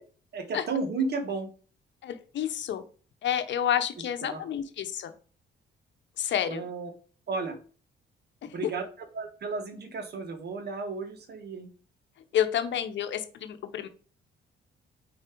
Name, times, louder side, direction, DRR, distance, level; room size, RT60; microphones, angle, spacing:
voice 1, 0.3-1.5 4.2-4.6 6.5-6.9 7.3-7.6 8.4-8.8 9.1-11.7, right 4 dB, 55° right, 6 dB, 1.5 m, -33 dB
voice 2, 2.0-2.8 3.2-5.1 6.2-6.6 8.4-8.5 12.3-13.9, left 10 dB, 65° left, 10 dB, 0.9 m, -29 dB
4.8 x 4.3 x 4.5 m, 0.40 s
cardioid pair, 90°, 20 cm